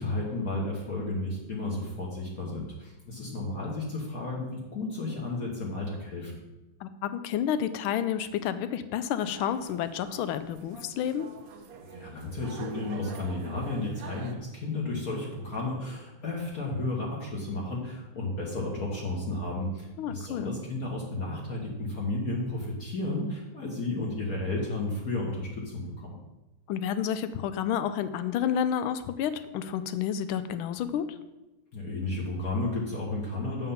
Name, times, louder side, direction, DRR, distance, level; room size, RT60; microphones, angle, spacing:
voice 1, 0.0-6.4 11.8-26.2 31.7-33.7, left 2 dB, 50° left, -3 dB, 1.6 m, -33 dB
voice 2, 6.8-11.3 20.0-20.5 26.7-31.2, left 9 dB, 80° left, 12 dB, 1.4 m, -30 dB
sound 1, 9.2-14.3, right 5 dB, 65° right, 0.9 m, -45 dB
7.4 x 5.6 x 5.6 m, 1.0 s
omnidirectional pair, 2.3 m